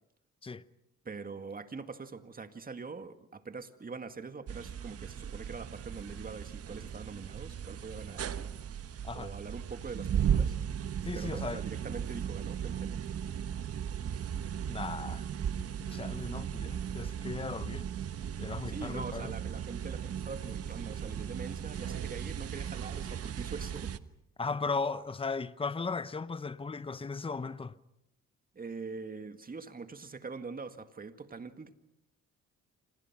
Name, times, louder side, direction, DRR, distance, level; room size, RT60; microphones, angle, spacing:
voice 1, 1.0-8.7 9.1-10.5 11.1-13.0 18.7-24.0 28.5-31.7, right 4 dB, 30° right, 2.0 m, -43 dB
sound 1, 4.5-24.0, right 8 dB, 50° right, 1.2 m, -36 dB
voice 2, 11.0-11.6 14.6-15.3 15.8-17.9 18.4-19.3 24.4-27.8, left 4 dB, 20° left, 0.9 m, -37 dB
28.5 x 26.5 x 6.1 m
cardioid pair, 90°, 30 cm